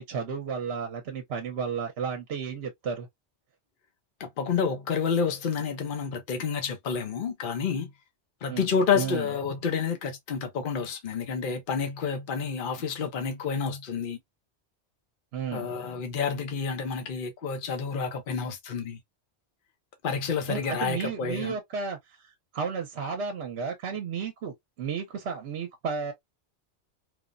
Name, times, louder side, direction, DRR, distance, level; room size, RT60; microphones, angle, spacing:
voice 1, 0.0-3.1 8.5-8.7 8.9-9.3 15.3-15.7 20.5-22.0 22.5-26.1, right 6 dB, 70° right, 0.9 m, -33 dB
voice 2, 4.2-7.9 8.4-14.2 15.5-19.0 20.0-21.6, left 6 dB, 55° left, 0.8 m, -29 dB
3.2 x 2.0 x 2.4 m
omnidirectional pair, 1.2 m